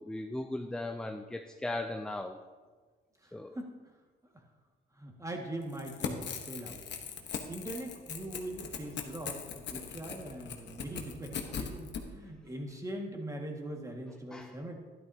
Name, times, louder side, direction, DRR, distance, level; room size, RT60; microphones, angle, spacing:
voice 1, 0.0-2.4 3.3-3.6 14.3-14.6, left 2 dB, 5° left, 5 dB, 0.5 m, -37 dB
voice 2, 3.2-3.8 4.3-4.4 4.9-6.2 6.5-6.8 7.5-14.7, right 1 dB, 15° right, 1 dB, 1.8 m, -41 dB
Crackle / Tearing, 5.7-12.0, left 7 dB, 65° left, 1.1 m, -40 dB
12.0 x 11.0 x 2.8 m, 1.4 s
cardioid pair, 90°, 20 cm